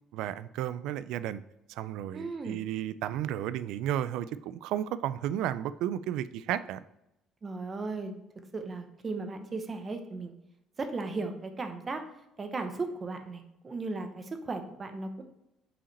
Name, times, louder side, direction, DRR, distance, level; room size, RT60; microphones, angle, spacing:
voice 1, 0.1-1.4 1.7-6.8, right 11 dB, 80° right, 14 dB, 0.3 m, -33 dB
voice 2, 2.1-2.7 7.4-8.2 8.5-10.3 10.8-12.0 12.4-15.2, right 3 dB, 25° right, 6 dB, 0.8 m, -36 dB
6.0 x 4.9 x 4.1 m, 0.86 s
cardioid pair, 130°, 0 cm